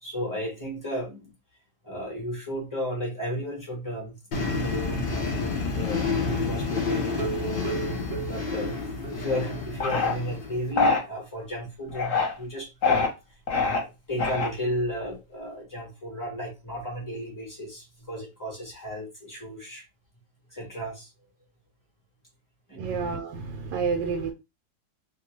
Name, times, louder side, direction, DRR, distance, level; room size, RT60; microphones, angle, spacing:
voice 1, 0.0-1.3 1.8-7.7 8.3-8.8 9.1-13.1 13.6-19.8 20.5-21.1 22.7-22.8, equal, 15° left, 0.8 m, -34 dB
sound 1, 4.3-10.7, left 4 dB, 80° left, 0.4 m, -29 dB
sound 2, 7.2-9.6 10.0-10.1 10.4-10.5 10.9-11.0, right 7 dB, 60° right, 0.3 m, -36 dB
sound 3, 9.8-10.1 10.8-11.0 11.9-12.3 12.8-13.1 13.5-13.8 14.2-14.7, left 4 dB, 50° left, 1.2 m, -23 dB
voice 2, 22.7-24.3, right 5 dB, 80° right, 1.2 m, -29 dB
2.9 x 2.3 x 3.0 m
omnidirectional pair, 2.0 m